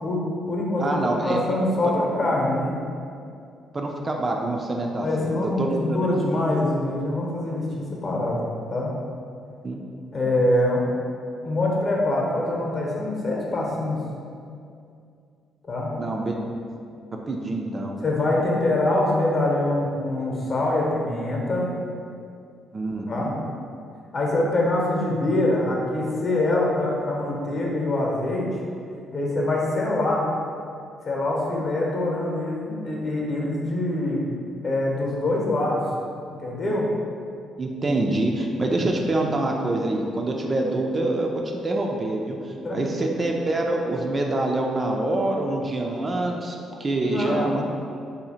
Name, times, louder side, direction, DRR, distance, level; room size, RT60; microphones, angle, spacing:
voice 1, 0.0-0.9 1.2-2.7 5.0-8.4 8.7-8.9 10.1-10.8 11.4-14.0 15.7-15.9 18.0-21.7 23.1-23.3 24.1-28.5 29.1-30.3 31.0-34.2 34.6-35.8 36.3-36.9 42.6-43.0 47.0-47.6, left 1 dB, 45° left, -3 dB, 0.8 m, -24 dB
voice 2, 0.8-1.4 3.7-6.0 9.6-9.8 16.0-16.4 17.1-18.0 22.7-23.4 37.6-41.3 41.6-47.6, right 2 dB, 30° right, 1 dB, 0.3 m, -26 dB
2.7 x 2.4 x 4.1 m, 2.4 s
cardioid pair, 90°, 0 cm